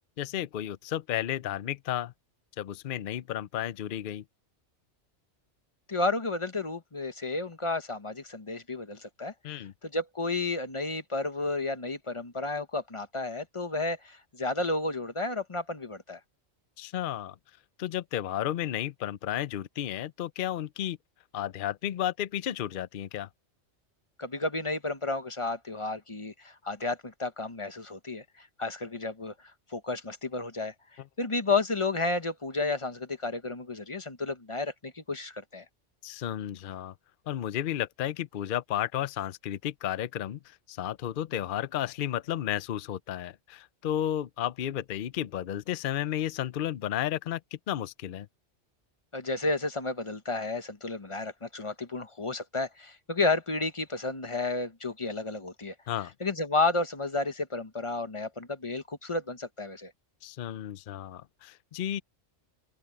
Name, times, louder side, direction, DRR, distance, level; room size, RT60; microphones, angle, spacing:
voice 1, 0.2-2.1 2.6-4.2 9.4-9.7 16.8-17.4 17.8-21.0 21.3-23.3 36.0-36.9 37.3-47.4 47.7-48.3 55.9-56.1 60.2-62.0, left 11 dB, 55° left, 0.7 m, -33 dB
voice 2, 5.9-16.2 24.2-29.3 29.7-30.7 31.2-35.6 49.1-55.7 56.2-59.9, left 3 dB, 25° left, 1.1 m, -32 dB
open air
omnidirectional pair, 1.2 m